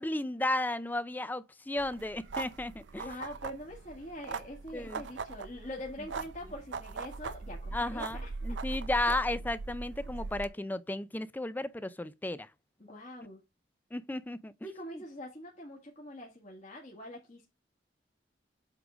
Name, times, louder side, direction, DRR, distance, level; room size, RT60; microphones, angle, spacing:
voice 1, 0.0-3.0 4.7-5.0 7.7-12.5 13.9-14.5, left 1 dB, 10° left, 0.4 m, -34 dB
sound 1, 1.8-10.5, right 4 dB, 80° right, 0.6 m, -40 dB
voice 2, 3.0-8.3 12.8-13.4 14.6-17.5, left 1 dB, 40° left, 1.8 m, -44 dB
8.2 x 3.7 x 4.9 m
head